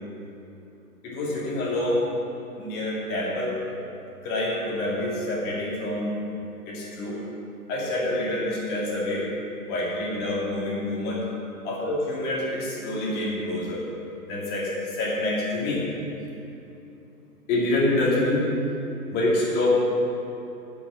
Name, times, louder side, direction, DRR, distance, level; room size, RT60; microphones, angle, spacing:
voice 1, 1.0-2.1 2.6-3.6 4.2-6.2 6.7-7.2 7.7-9.3 9.7-11.2 11.6-13.8 14.3-15.9 17.5-18.4 19.1-19.8, left 1 dB, 20° left, -5 dB, 2.2 m, -26 dB
8.3 x 6.2 x 8.1 m, 2.9 s
figure-of-eight pair, 135°, 47 cm